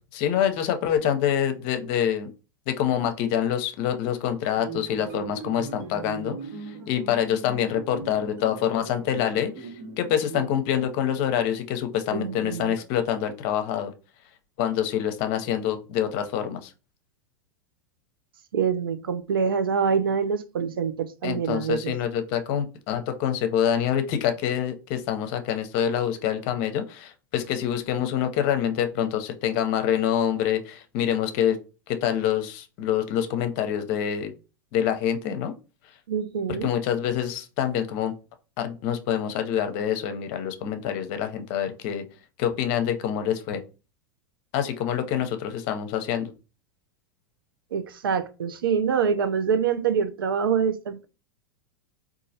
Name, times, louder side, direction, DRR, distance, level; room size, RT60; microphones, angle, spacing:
voice 1, 0.1-2.3 2.7-6.4 6.7-9.7 10.0-13.9 14.6-16.7 21.2-31.6 31.9-34.3 34.7-35.5 36.5-38.1 38.6-42.0 42.4-43.6 44.5-46.3, left 9 dB, 55° left, 0.7 m, -26 dB
sound 1, 4.5-10.5, right 5 dB, 65° right, 1.2 m, -40 dB
voice 2, 12.1-12.8 18.5-21.9 36.1-36.7 47.7-51.0, right 6 dB, 85° right, 0.5 m, -25 dB
3.9 x 2.5 x 2.7 m
hypercardioid pair, 105°, 11 cm